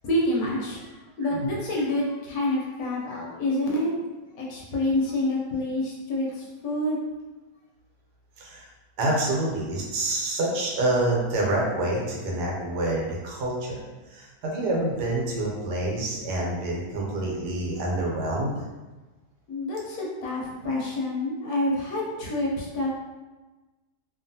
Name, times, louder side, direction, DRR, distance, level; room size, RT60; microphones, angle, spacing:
voice 1, 0.0-0.9 1.2-3.9 4.3-7.0 19.5-22.9, left 1 dB, 70° left, -3 dB, 1.1 m, -27 dB
voice 2, 9.0-18.6, right 1 dB, 85° right, -3 dB, 1.3 m, -27 dB
2.9 x 2.4 x 2.6 m, 1.2 s
omnidirectional pair, 1.8 m